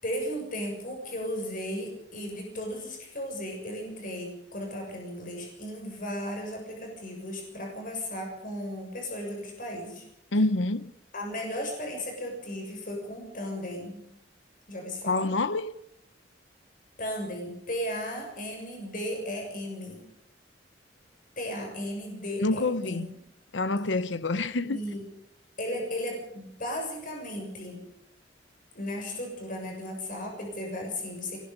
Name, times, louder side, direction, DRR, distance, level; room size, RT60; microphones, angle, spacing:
voice 1, 0.0-10.0 11.1-14.1 14.7-15.3 17.0-20.0 21.4-23.1 24.6-25.0 25.6-27.8 28.7-31.4, equal, 45° left, 6.7 m, -35 dB
voice 2, 10.3-10.9 15.1-15.7 22.4-23.1 23.5-24.8, left 2 dB, 80° left, 0.9 m, -27 dB
24.5 x 20.0 x 5.4 m
head